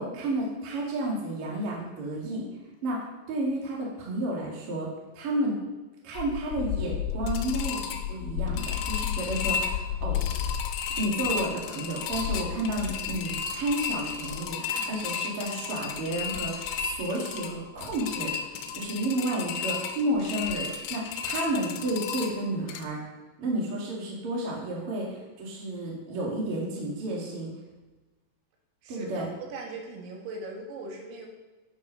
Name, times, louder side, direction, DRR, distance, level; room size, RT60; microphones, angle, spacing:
voice 1, 0.0-2.5 2.8-5.6 6.0-10.2 11.0-18.3 18.7-23.0 23.4-27.5 28.9-29.2, right 1 dB, 45° right, -4 dB, 1.8 m, -31 dB
sound 1, 6.1-22.8, left 8 dB, 80° left, 3.2 m, -32 dB
voice 2, 28.8-31.3, right 3 dB, 80° right, 0 dB, 4.3 m, -39 dB
10.0 x 6.1 x 5.6 m, 1.1 s
omnidirectional pair, 6.0 m